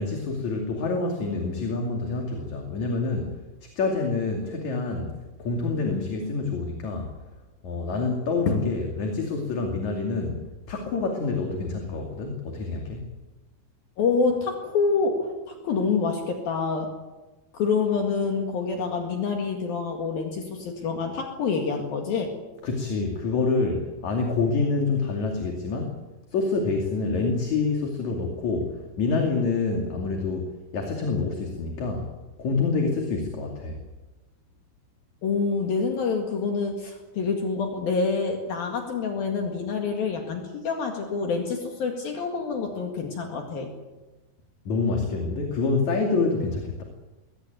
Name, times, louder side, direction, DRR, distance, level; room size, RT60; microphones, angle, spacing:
voice 1, 0.0-3.3 3.6-7.1 7.6-10.4 10.7-13.0 22.6-26.0 26.3-30.5 30.7-32.1 32.4-33.8 44.7-46.8, left 3 dB, 50° left, 2 dB, 3.6 m, -27 dB
voice 2, 14.0-16.9 17.5-22.3 35.2-43.7, left 4 dB, 65° left, 3 dB, 3.7 m, -27 dB
22.0 x 19.0 x 9.3 m, 1.1 s
omnidirectional pair, 4.7 m